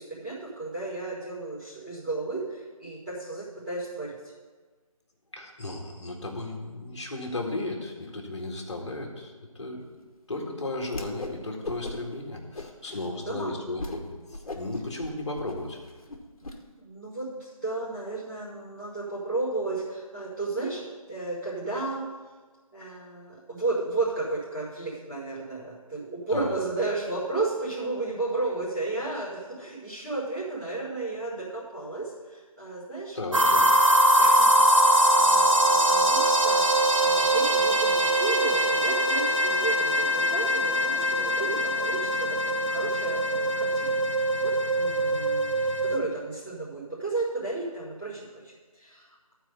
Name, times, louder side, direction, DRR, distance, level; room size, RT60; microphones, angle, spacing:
voice 1, 0.0-4.3 12.9-13.0 13.2-13.6 16.8-20.8 21.1-22.0 22.7-33.7 34.2-49.3, right 3 dB, 10° right, -19 dB, 3.2 m, -33 dB
voice 2, 5.3-9.8 10.3-15.8 26.3-26.5 33.1-33.6, left 2 dB, 50° left, 1 dB, 1.9 m, -35 dB
Whoosh swoosh swish, 10.9-11.4 11.6-12.2 12.5-13.0 13.4-13.5 13.8-14.0 14.3-16.6, left 2 dB, 70° left, 1.3 m, -37 dB
sound 1, 33.3-46.0, right 1 dB, 60° right, 1.2 m, -22 dB
13.0 x 4.7 x 6.9 m, 1.4 s
figure-of-eight pair, 170°, 19 cm